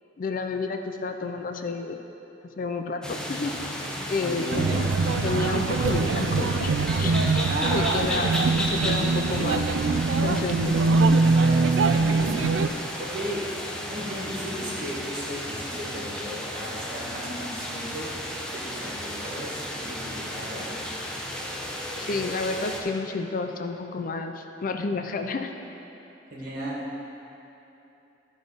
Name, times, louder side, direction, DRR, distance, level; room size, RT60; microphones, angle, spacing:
voice 1, 0.2-2.0 2.4-3.6 4.1-4.9 5.2-6.7 7.0-7.5 7.7-8.3 8.6-9.9 10.2-11.2 22.0-25.5, left 3 dB, 50° left, 5 dB, 0.5 m, -30 dB
sound 1, 3.0-22.8, equal, 5° left, 0.7 m, -34 dB
voice 2, 4.2-4.7 7.5-8.0 11.7-12.4 13.0-13.4 13.9-20.7 26.3-26.8, equal, 55° right, -5 dB, 2.0 m, -35 dB
sound 2, 4.5-12.7, right 3 dB, 85° right, 0.4 m, -23 dB
12.5 x 4.2 x 5.1 m, 2.9 s
head